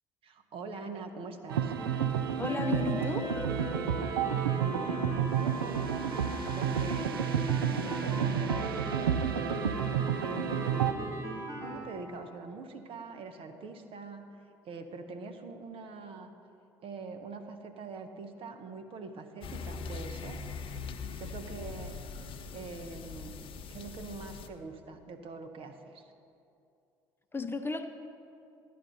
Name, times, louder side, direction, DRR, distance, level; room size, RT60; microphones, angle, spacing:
voice 1, 0.2-1.7 4.6-9.6 10.2-11.3 11.6-14.3 14.6-16.3 16.8-20.4 21.2-22.0 22.5-26.1, right 4 dB, 50° right, 6 dB, 1.0 m, -43 dB
sound 1, 1.5-10.9, right 8 dB, 85° right, 0.4 m, -30 dB
sound 2, 1.8-11.8, right 1 dB, 25° right, 2.6 m, -39 dB
voice 2, 2.4-3.3 27.3-27.9, left 4 dB, 20° left, 8 dB, 0.7 m, -33 dB
sound 3, 19.4-24.5, left 5 dB, 50° left, 0.8 m, -41 dB
13.0 x 10.5 x 4.1 m, 2.6 s
hypercardioid pair, 60°, 12 cm